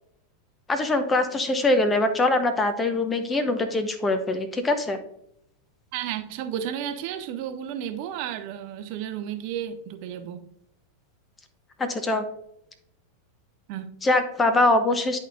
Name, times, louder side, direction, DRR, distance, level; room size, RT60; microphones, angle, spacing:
voice 1, 0.7-5.0 11.8-12.2 14.0-15.2, left 2 dB, 15° left, 8 dB, 0.8 m, -23 dB
voice 2, 5.9-10.5 13.7-14.0, right 9 dB, 45° right, 8 dB, 0.7 m, -33 dB
11.0 x 4.2 x 2.5 m, 0.76 s
figure-of-eight pair, 90°, 0 cm